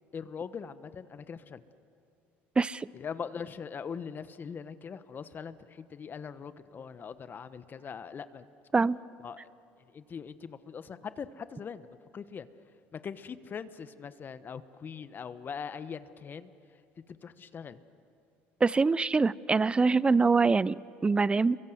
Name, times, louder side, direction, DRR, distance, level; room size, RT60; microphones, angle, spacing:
voice 1, 0.1-1.6 2.9-8.5 9.2-9.5 9.9-12.5 12.9-16.5 17.1-17.8, left 6 dB, 35° left, 13 dB, 1.1 m, -41 dB
voice 2, 2.6-2.9 8.7-9.0 18.6-21.6, right 4 dB, 20° right, 20 dB, 0.5 m, -24 dB
29.0 x 23.0 x 7.9 m, 2.5 s
supercardioid pair, 85°, 5 cm